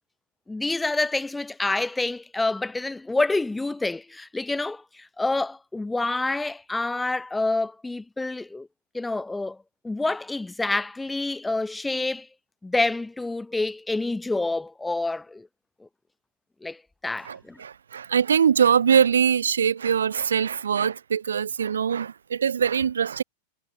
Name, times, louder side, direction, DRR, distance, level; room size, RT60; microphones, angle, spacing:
voice 1, 0.5-8.7 8.9-9.6 9.8-12.3 12.6-15.5 16.6-17.6, left 2 dB, 10° left, 0.3 m, -27 dB
voice 2, 17.2-23.2, right 7 dB, 80° right, 1.1 m, -22 dB
hypercardioid pair, 95°, 0 cm